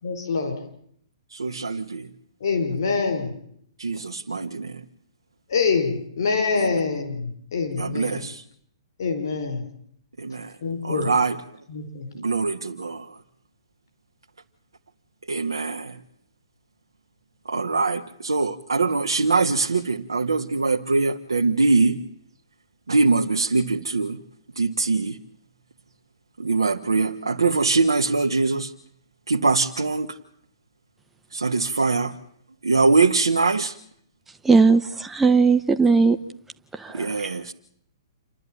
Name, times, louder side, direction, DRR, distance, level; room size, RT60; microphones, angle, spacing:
voice 1, 0.0-0.6 2.4-3.3 5.5-8.2 9.0-9.6 10.6-11.1 11.7-12.1, left 5 dB, 60° left, 6 dB, 5.3 m, -25 dB
voice 2, 1.3-2.1 3.8-4.8 6.6-6.7 7.8-8.4 10.2-10.5 10.8-11.4 12.1-13.2 15.3-16.0 17.5-22.0 22.9-24.2 24.6-25.2 26.4-28.7 29.3-30.2 31.3-32.1 32.6-33.8 36.9-37.5, right 3 dB, 80° right, 3 dB, 1.3 m, -23 dB
voice 3, 34.4-36.2 36.8-37.3, right 4 dB, 10° right, 7 dB, 0.8 m, -18 dB
28.0 x 12.0 x 9.1 m, 0.68 s
figure-of-eight pair, 120°, 3 cm